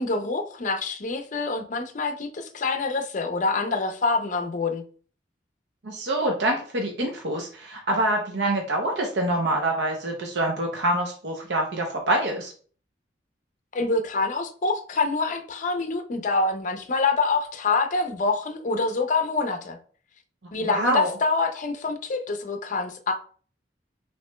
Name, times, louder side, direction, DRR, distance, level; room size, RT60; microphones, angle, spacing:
voice 1, 0.0-4.8 13.7-19.8 20.5-23.1, left 3 dB, 45° left, 6 dB, 0.5 m, -26 dB
voice 2, 5.8-12.5 20.6-21.1, right 1 dB, 70° right, 1 dB, 0.6 m, -25 dB
5.8 x 3.0 x 2.2 m, 0.43 s
head